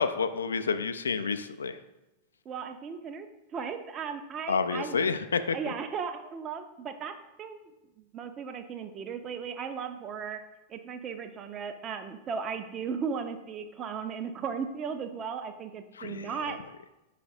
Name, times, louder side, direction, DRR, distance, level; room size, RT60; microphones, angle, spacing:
voice 1, 0.0-1.8 4.5-5.6 16.0-16.3, left 5 dB, 70° left, 11 dB, 0.3 m, -29 dB
voice 2, 2.5-5.0 5.5-7.1 7.4-7.6 8.0-10.4 10.7-16.6, right 6 dB, 30° right, 7 dB, 0.5 m, -36 dB
4.9 x 4.5 x 4.3 m, 1.0 s
figure-of-eight pair, 90°, 0 cm